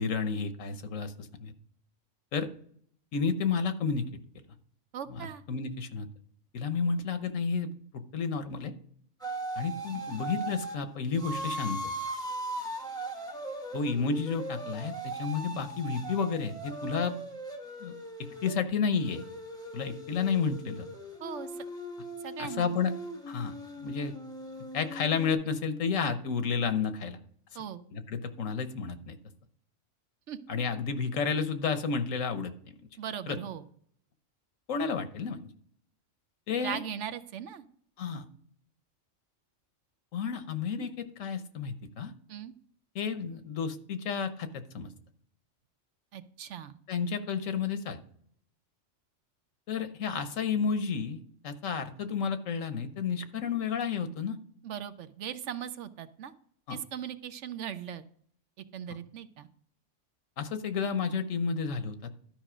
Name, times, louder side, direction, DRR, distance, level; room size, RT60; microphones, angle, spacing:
voice 1, 0.0-1.5 2.3-2.5 3.1-4.1 5.1-6.1 6.5-8.7 9.6-11.9 13.7-17.2 17.8-17.9 18.4-19.2 19.7-20.9 22.4-22.9 23.3-23.5 23.8-24.1 24.7-27.2 27.9-29.2 30.5-32.7 33.3-33.4 34.7-35.4 36.5-36.8 38.0-38.3 40.1-42.1 42.9-44.9 46.9-48.0 49.7-54.4 56.7-56.8 60.4-62.1, left 5 dB, 85° left, 10 dB, 1.3 m, -31 dB
voice 2, 4.9-5.4 21.2-21.7 22.2-22.7 27.5-27.8 30.3-30.4 33.0-33.7 36.6-37.6 42.3-42.5 46.1-46.8 54.6-56.3 56.7-58.0 58.6-59.5, right 9 dB, 70° right, 11 dB, 1.0 m, -39 dB
sound 1, 9.2-10.8 11.2-18.5 19.0-25.3, right 1 dB, 5° left, 1.5 m, -39 dB
12.5 x 5.1 x 5.0 m, 0.62 s
omnidirectional pair, 1.3 m